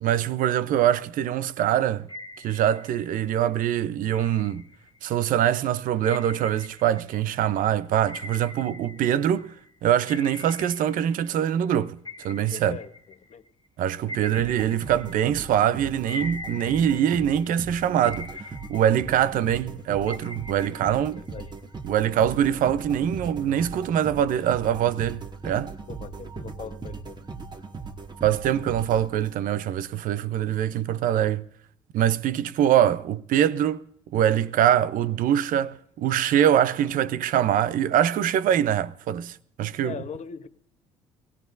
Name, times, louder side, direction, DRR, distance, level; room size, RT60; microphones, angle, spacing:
voice 1, 0.0-2.1 2.4-4.6 5.0-9.5 9.8-12.0 12.2-12.8 13.8-21.2 21.9-25.7 28.2-31.4 31.9-33.8 34.1-39.9, right 10 dB, 60° right, 0.7 m, -23 dB
sound 1, 2.1-3.4 4.1-5.2 6.0-9.6 10.1-11.7 12.0-15.6 16.1-17.6 18.0-19.6 20.1-21.8, left 2 dB, 25° left, 1.8 m, -42 dB
voice 2, 12.5-12.9 13.3-13.4 21.1-21.5 25.9-27.2 39.8-40.5, left 7 dB, 50° left, 1.0 m, -39 dB
Robotic News Report, 14.4-29.6, right 4 dB, 30° right, 1.7 m, -39 dB
22.5 x 17.0 x 2.6 m
hypercardioid pair, 55°, 16 cm